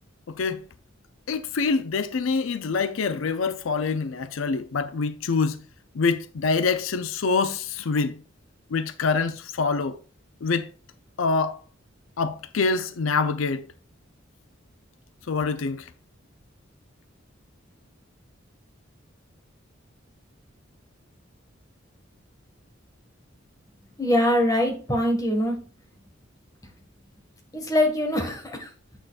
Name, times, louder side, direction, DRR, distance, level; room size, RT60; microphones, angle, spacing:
voice 1, 0.3-0.6 1.3-5.6 5.9-8.2 8.7-10.0 10.4-10.7 11.2-11.6 12.2-13.6 15.3-15.9, left 4 dB, 90° left, 0.5 m, -25 dB
voice 2, 24.0-25.6 27.5-28.7, left 1 dB, 20° left, 1.6 m, -23 dB
7.9 x 6.4 x 2.4 m
head